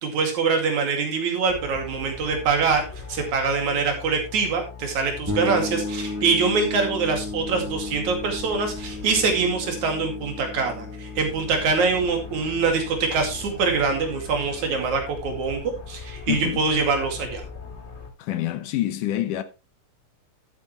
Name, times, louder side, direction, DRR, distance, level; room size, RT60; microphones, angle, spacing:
voice 1, 0.0-2.8 3.1-15.6 15.9-17.4, right 4 dB, 65° right, 3.6 m, -24 dB
sound 1, 1.5-18.1, left 5 dB, 25° left, 2.0 m, -40 dB
sound 2, 5.3-14.9, left 2 dB, 5° right, 2.6 m, -35 dB
voice 2, 16.3-16.6 18.2-19.4, left 13 dB, 85° left, 2.5 m, -26 dB
12.5 x 8.8 x 3.1 m
omnidirectional pair, 3.6 m